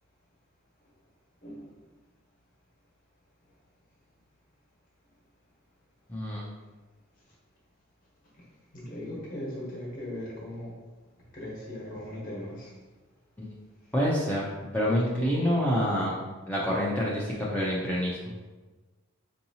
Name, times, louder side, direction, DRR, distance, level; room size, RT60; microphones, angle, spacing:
voice 1, 1.4-1.7 8.3-8.4 8.7-10.7 11.3-12.7, left 1 dB, 40° left, -5 dB, 1.0 m, -38 dB
voice 2, 6.1-6.4 13.4-13.5 13.9-14.4 14.7-16.1 16.5-18.2, equal, 10° left, -5 dB, 0.4 m, -27 dB
4.6 x 2.7 x 2.8 m, 1.2 s
head